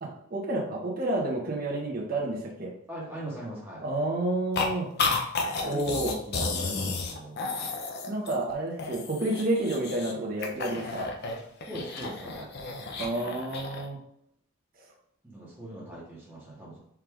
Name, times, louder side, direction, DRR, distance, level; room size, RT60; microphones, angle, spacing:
voice 1, 0.0-2.7 3.8-4.9 5.6-6.2 8.1-11.1 13.0-14.0, right 1 dB, 45° right, -2 dB, 0.8 m, -30 dB
voice 2, 2.9-3.8 5.7-7.7 11.7-12.5 15.2-16.8, right 1 dB, 10° right, -7 dB, 0.9 m, -41 dB
sound 1, 4.5-4.7 5.0-8.5 8.8-10.1 10.4-13.9, left 4 dB, 50° left, 0.5 m, -32 dB
4.6 x 2.4 x 3.5 m, 0.69 s
head